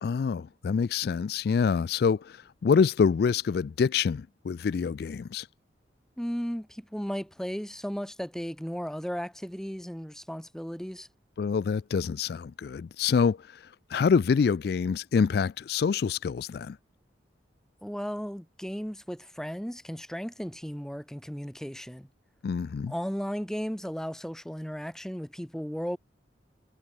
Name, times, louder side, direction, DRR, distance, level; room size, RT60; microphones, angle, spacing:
voice 1, 0.0-5.5 11.4-16.8 22.4-22.9, left 6 dB, 55° left, 0.3 m, -26 dB
voice 2, 6.2-11.1 17.8-22.1 22.9-26.0, equal, 5° left, 1.3 m, -35 dB
head